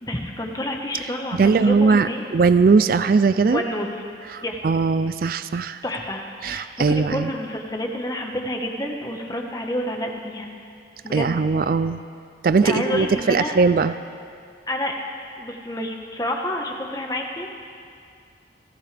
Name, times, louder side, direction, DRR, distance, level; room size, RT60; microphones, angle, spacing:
voice 1, 0.0-2.2 3.5-4.0 4.4-4.6 5.8-10.5 11.0-11.4 12.6-13.5 14.7-15.0 15.4-17.5, left 1 dB, 20° left, 1 dB, 1.4 m, -29 dB
voice 2, 1.4-3.6 4.3-5.8 6.4-7.3 11.1-12.0 12.4-14.0, right 4 dB, 55° right, 12 dB, 0.4 m, -19 dB
23.5 x 15.5 x 3.4 m, 2.3 s
head